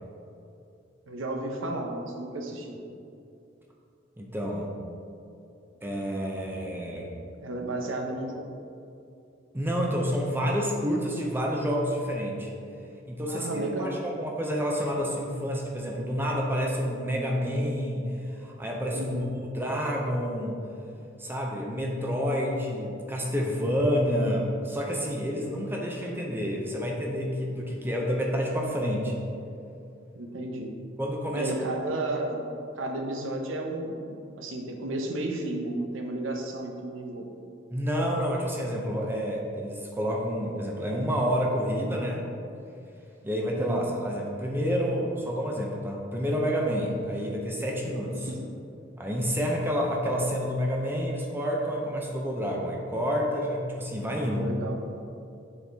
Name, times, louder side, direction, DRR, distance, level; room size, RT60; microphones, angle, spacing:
voice 1, 1.1-2.8 7.4-8.5 13.2-14.0 18.9-19.3 30.1-30.8 31.3-32.5 32.8-37.3 43.5-43.8 48.3-48.4 54.1-54.8, right 2 dB, 90° right, 2 dB, 0.8 m, -33 dB
voice 2, 4.2-4.7 5.8-7.2 9.5-12.5 13.1-19.2 19.5-20.6 21.2-29.2 31.0-31.5 37.7-42.2 43.2-48.3 49.0-54.5, equal, 10° right, -1 dB, 0.6 m, -29 dB
7.1 x 4.1 x 3.5 m, 2.6 s
head